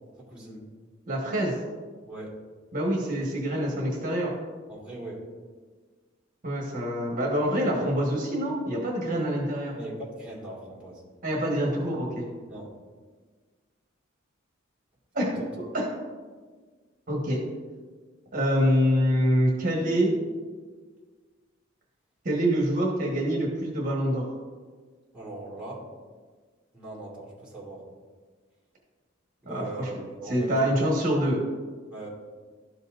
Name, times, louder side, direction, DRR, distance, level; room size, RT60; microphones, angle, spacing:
voice 1, 0.2-0.7 2.0-2.4 4.7-5.3 9.8-11.0 12.5-12.7 15.2-15.5 25.1-25.9 26.7-27.8 29.4-30.7 31.9-32.1, right 2 dB, 5° right, -6 dB, 1.8 m, -40 dB
voice 2, 1.1-1.6 2.7-4.3 6.4-9.7 11.2-12.3 15.1-15.3 15.7-15.9 17.1-17.4 18.3-20.1 22.2-24.3 29.5-29.9 30.3-31.4, equal, 45° right, -2 dB, 1.2 m, -25 dB
12.5 x 5.4 x 2.4 m, 1.5 s
head